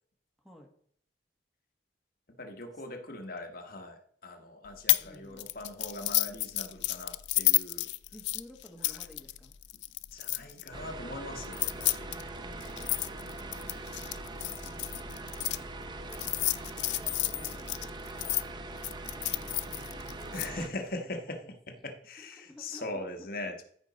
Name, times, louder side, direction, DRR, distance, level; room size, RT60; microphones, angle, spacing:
voice 1, 0.4-0.8 2.9-3.0 5.0-5.5 8.1-9.6 12.5-13.8 15.5-17.8 19.1-20.9 21.4-21.5 21.8-21.9 22.2-23.5, left 1 dB, ahead, 0 dB, 1.5 m, -54 dB
voice 2, 2.4-7.9 10.1-12.9 20.3-23.6, left 2 dB, 55° left, 4 dB, 1.2 m, -41 dB
sound 1, 4.9-5.1 5.4-10.7 11.4-15.6 16.1-18.4 18.8-20.5, left 18 dB, 75° left, 0.4 m, -31 dB
sound 2, 10.7-20.7, right 2 dB, 25° right, 0.6 m, -42 dB
14.0 x 5.1 x 4.0 m, 0.63 s
head